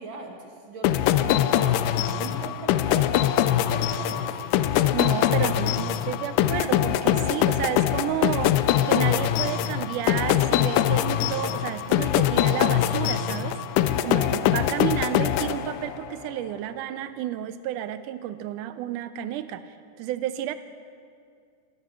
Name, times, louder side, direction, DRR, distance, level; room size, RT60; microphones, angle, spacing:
voice 1, 0.0-4.4, right 3 dB, 50° right, 1 dB, 1.6 m, -40 dB
sound 1, 0.8-16.1, left 11 dB, 80° left, 2.0 m, -23 dB
voice 2, 4.9-13.6 14.0-19.6 20.0-20.5, right 11 dB, 80° right, 12 dB, 2.0 m, -31 dB
13.0 x 13.0 x 6.9 m, 2.3 s
omnidirectional pair, 3.8 m